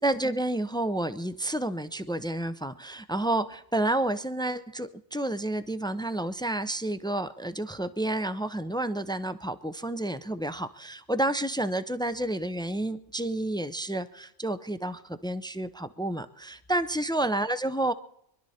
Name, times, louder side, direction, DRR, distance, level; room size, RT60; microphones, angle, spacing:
voice 1, 0.0-17.9, right 1 dB, 5° left, 12 dB, 0.4 m, -30 dB
24.5 x 12.0 x 4.3 m, 0.73 s
omnidirectional pair, 1.1 m